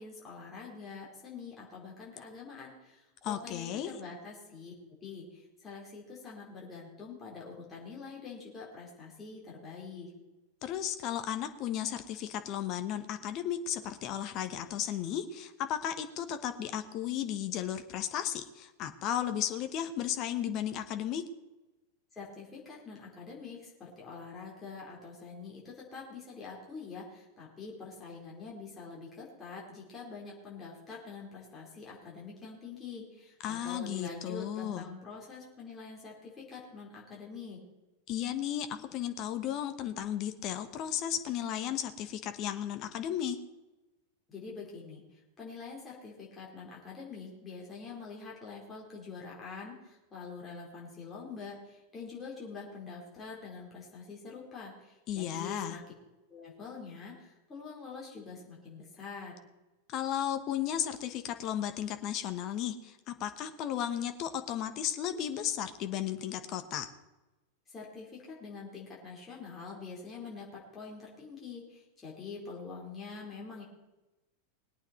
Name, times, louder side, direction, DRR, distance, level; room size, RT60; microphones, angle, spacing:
voice 1, 0.0-4.7 5.0-10.1 22.1-37.6 44.3-45.0 45.4-55.8 56.3-59.3 67.7-73.6, left 4 dB, 15° left, -4 dB, 4.3 m, -45 dB
voice 2, 3.2-3.9 10.6-21.2 33.4-34.9 38.1-43.4 55.1-55.8 59.9-66.9, left 10 dB, 40° left, 8 dB, 1.3 m, -34 dB
20.5 x 8.8 x 4.5 m, 1.1 s
figure-of-eight pair, 90°, 0 cm